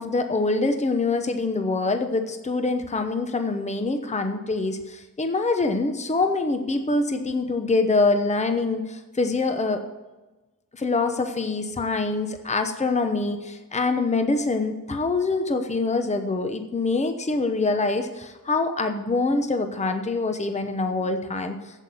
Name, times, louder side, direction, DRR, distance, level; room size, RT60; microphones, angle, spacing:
voice 1, 0.0-9.8 10.7-21.8, left 3 dB, 20° left, 7 dB, 0.9 m, -25 dB
8.3 x 8.1 x 7.1 m, 1.2 s
cardioid pair, 75°, 34 cm